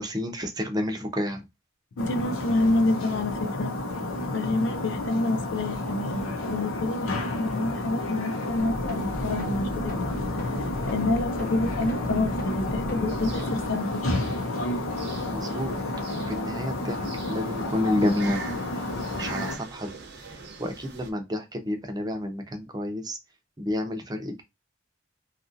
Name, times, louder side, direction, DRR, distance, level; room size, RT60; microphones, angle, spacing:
voice 1, 0.0-1.4 15.3-15.7 16.3-18.4 19.2-19.9 20.6-23.2 23.6-24.4, left 1 dB, 20° right, 0.6 m, -29 dB
sound 1, 2.0-19.6, left 2 dB, 85° left, 0.7 m, -31 dB
voice 2, 2.0-3.7 4.3-10.1 10.4-10.5 10.8-14.0, left 2 dB, 60° left, 0.4 m, -28 dB
sound 2, 8.6-13.6, equal, 45° left, 0.8 m, -37 dB
sound 3, 13.1-21.1, right 4 dB, 55° right, 0.7 m, -43 dB
2.8 x 2.5 x 2.5 m
head